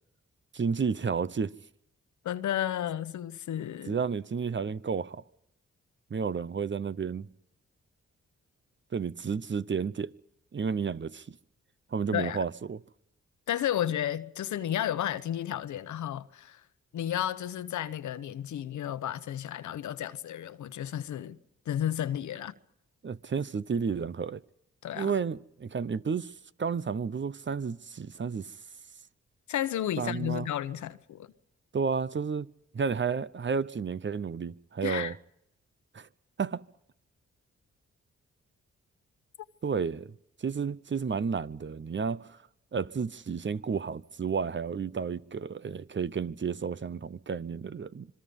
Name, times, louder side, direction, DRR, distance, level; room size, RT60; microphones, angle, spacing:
voice 1, 0.5-1.5 3.9-5.2 6.1-7.3 8.9-10.1 10.5-11.3 11.9-12.8 23.0-24.4 24.9-26.3 26.6-28.5 30.0-30.5 31.7-32.5 32.7-35.1 35.9-36.1 36.4-36.6 39.6-40.1 40.4-42.4 42.7-48.1, right 6 dB, 40° right, 0.9 m, -31 dB
voice 2, 2.2-4.0 12.1-12.4 13.5-16.6 16.9-21.4 21.7-22.5 24.8-25.1 29.5-31.3 34.8-35.1, left 11 dB, 80° left, 1.0 m, -32 dB
26.0 x 22.5 x 5.4 m
supercardioid pair, 50°, 29 cm